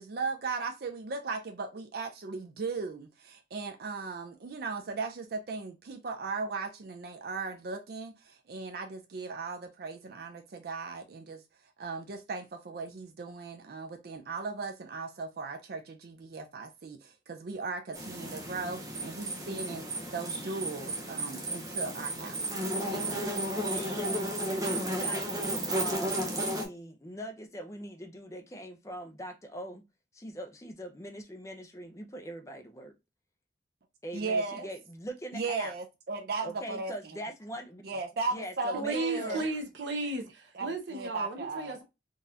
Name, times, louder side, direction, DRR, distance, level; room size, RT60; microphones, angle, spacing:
voice 1, 0.0-11.4 11.8-22.5 22.9-23.3 34.1-34.7 35.3-36.9 37.8-39.5 40.5-41.8, right 4 dB, 55° right, 0.4 m, -37 dB
sound 1, 17.9-26.7, right 1 dB, 20° right, 0.7 m, -33 dB
voice 2, 23.7-29.8 30.1-32.9 34.0-35.7 36.4-37.8 38.3-39.5, equal, 15° left, 0.5 m, -42 dB
voice 3, 38.7-41.8, right 2 dB, 75° right, 0.8 m, -34 dB
3.9 x 2.4 x 2.7 m
head